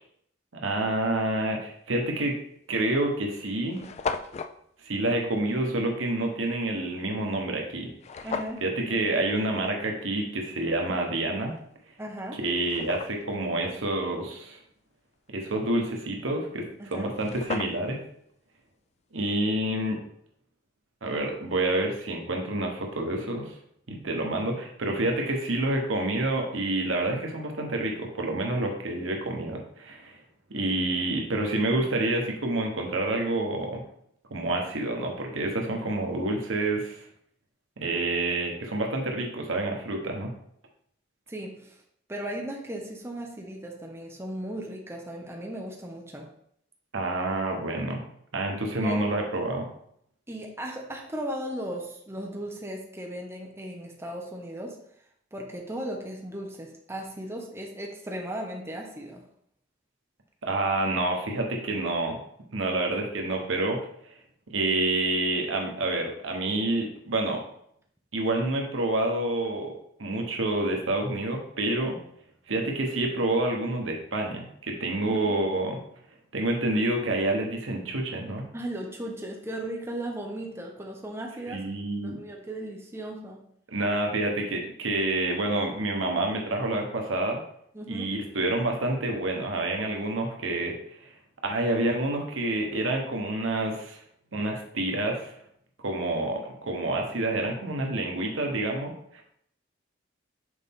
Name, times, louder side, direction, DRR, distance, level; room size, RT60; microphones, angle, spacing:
voice 1, 0.5-2.4 2.7-3.8 4.8-7.9 8.2-8.3 8.6-11.5 12.4-14.6 15.3-16.6 16.9-18.0 19.1-20.0 21.0-23.6 23.9-30.2 30.5-33.8 34.3-37.0 37.8-40.3 46.9-48.0 48.3-49.7 60.4-62.2 62.5-64.1 64.5-67.4 68.1-69.7 70.0-72.0 72.5-75.8 76.3-78.4 81.5-82.2 83.7-87.4 87.9-91.1 91.4-94.0 94.3-95.3 95.8-99.2, right 2 dB, 90° right, 2 dB, 1.2 m, -28 dB
sound 1, 2.2-2.4 3.1-3.2 3.4-3.5 3.7-4.6 8.0-8.7 11.6-11.7 12.2-13.4 16.7-16.8 17.0-18.0, left 5 dB, 35° left, 0.3 m, -35 dB
voice 2, 8.2-8.6 12.0-12.4 16.8-17.1 41.3-41.7 42.1-46.3 48.7-49.0 50.3-54.8 55.3-59.2 75.1-75.2 78.5-81.6 82.0-83.4 87.7-88.1, right 1 dB, 15° right, 0 dB, 0.9 m, -36 dB
6.5 x 4.2 x 3.7 m, 0.69 s
head